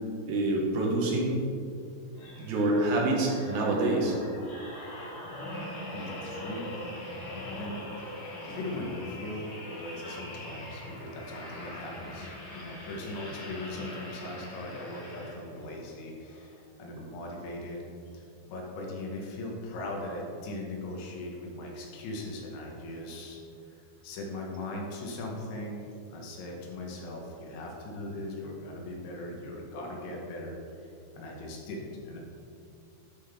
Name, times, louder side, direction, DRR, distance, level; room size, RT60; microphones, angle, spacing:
voice 1, 0.3-1.4 2.4-4.1, right 2 dB, 70° right, -2 dB, 2.3 m, -26 dB
sound 1, 2.1-15.7 16.3-16.5, left 1 dB, 55° left, 2.2 m, -42 dB
voice 2, 5.9-6.9 7.6-17.8 18.1-23.4 23.7-25.8 26.1-32.2, left 1 dB, 80° left, -1 dB, 3.4 m, -39 dB
10.0 x 5.7 x 3.5 m, 2.5 s
omnidirectional pair, 5.2 m